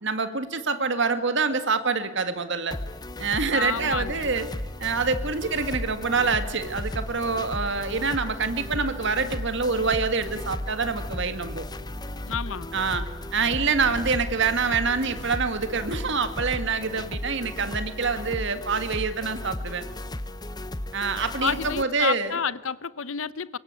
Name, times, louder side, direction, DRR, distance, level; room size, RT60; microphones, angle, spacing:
voice 1, 0.0-2.8 3.2-4.5 4.8-11.6 12.7-19.9 20.9-22.4, right 4 dB, 55° right, 1.9 m, -26 dB
sound 1, 2.7-21.8, left 1 dB, 20° left, 0.9 m, -35 dB
voice 2, 3.5-4.3 12.3-12.7 21.4-23.6, left 6 dB, 65° left, 0.9 m, -30 dB
sound 2, 3.9-16.8, equal, 30° right, 3.2 m, -43 dB
25.5 x 23.0 x 9.5 m
head